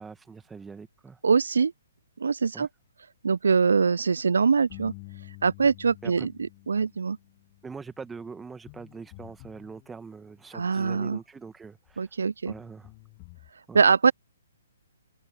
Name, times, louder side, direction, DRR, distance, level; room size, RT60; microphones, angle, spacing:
voice 1, 0.0-1.2 2.5-2.7 6.0-6.3 7.6-12.1 12.5-12.9 13.7-13.8, right 5 dB, 10° right, 1.7 m, -43 dB
voice 2, 1.2-1.7 2.2-2.7 3.2-4.9 5.4-6.3 6.7-7.2 10.5-11.2 12.0-12.5 13.7-14.1, right 5 dB, 65° right, 0.4 m, -23 dB
sound 1, 4.7-10.6 11.9-12.0 12.5-13.5, left 34 dB, 30° left, 6.7 m, -49 dB
open air
figure-of-eight pair, 130°, 0 cm